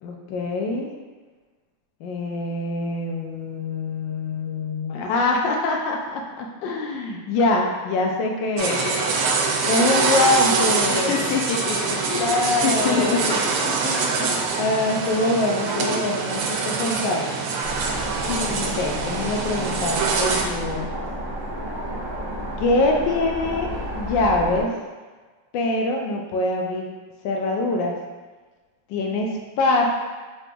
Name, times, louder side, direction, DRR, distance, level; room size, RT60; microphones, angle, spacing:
voice 1, 0.0-0.9 2.0-8.8 9.6-11.2 12.1-17.3 18.6-20.9 22.6-24.7 25.5-26.9 27.2-28.0 28.9-29.9, left 2 dB, 70° left, 1 dB, 1.2 m, -24 dB
voice 2, 8.6-9.4 10.9-13.5 18.2-18.8, left 5 dB, 90° left, -3 dB, 1.5 m, -27 dB
sound 1, 8.6-20.4, right 4 dB, 90° right, 1.5 m, -24 dB
helicopter hovering (distant), 17.6-24.6, equal, 40° right, 0.8 m, -31 dB
3.9 x 2.8 x 3.5 m, 1.3 s
omnidirectional pair, 2.4 m